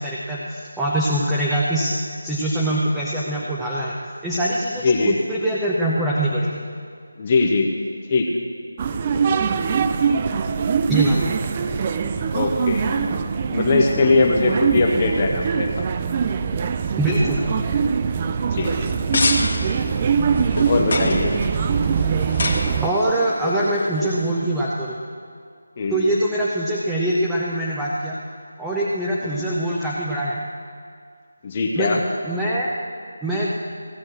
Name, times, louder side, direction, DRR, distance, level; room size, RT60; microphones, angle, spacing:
voice 1, 0.0-2.0 2.2-4.0 4.2-6.6 10.9-11.2 17.0-17.4 22.8-25.0 25.9-28.2 28.6-30.4 31.8-32.7 33.2-33.5, right 1 dB, 5° right, -6 dB, 0.8 m, -23 dB
voice 2, 4.8-5.1 7.2-7.8 8.1-8.3 12.3-12.9 13.5-15.8 18.5-18.9 20.7-21.3 25.8-26.1 31.4-32.0, left 3 dB, 30° left, 1 dB, 0.9 m, -20 dB
sound 1, 8.8-22.9, right 6 dB, 25° right, 0.4 m, -22 dB
sound 2, 18.8-24.3, left 2 dB, 50° left, 1.6 m, -28 dB
16.0 x 6.3 x 7.6 m, 2.1 s
figure-of-eight pair, 165°, 0 cm